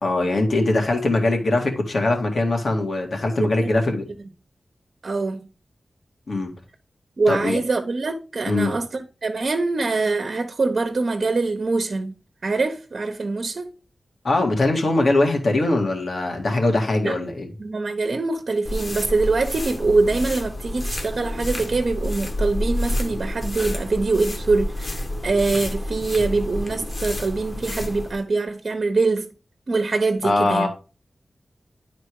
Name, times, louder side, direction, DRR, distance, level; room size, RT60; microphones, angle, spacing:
voice 1, 0.0-4.1 6.3-6.5 7.3-7.6 8.5-8.8 14.2-17.5 30.2-30.7, left 2 dB, 70° left, 2.2 m, -21 dB
voice 2, 3.4-3.7 5.0-5.5 7.2-12.1 12.4-13.7 17.0-17.1 17.6-29.3 29.7-30.7, right 3 dB, 65° right, 1.0 m, -23 dB
sound 1, 18.6-28.2, left 1 dB, 50° left, 1.6 m, -29 dB
9.8 x 4.2 x 4.7 m
cardioid pair, 40°, 0 cm